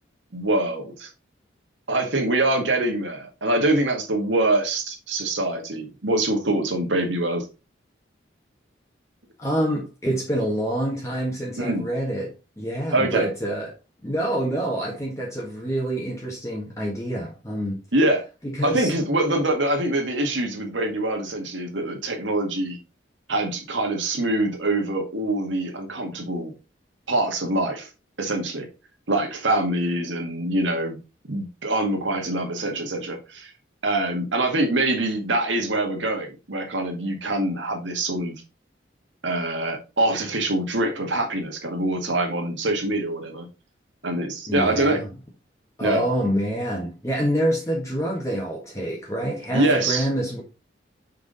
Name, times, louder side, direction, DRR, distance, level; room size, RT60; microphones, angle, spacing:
voice 1, 0.3-1.1 1.9-7.5 11.6-11.9 12.9-13.3 17.9-18.2 18.6-22.8 23.3-26.5 27.1-27.9 28.2-28.7 29.1-31.0 31.3-33.5 33.8-38.3 39.2-43.5 44.0-45.0 45.8-46.0 49.5-50.1, right 2 dB, 85° right, 1.9 m, -24 dB
voice 2, 9.4-12.3 12.6-13.7 14.0-17.8 18.4-18.9 44.5-45.1 45.8-50.4, right 1 dB, 15° left, 1.4 m, -26 dB
6.2 x 4.7 x 4.0 m
head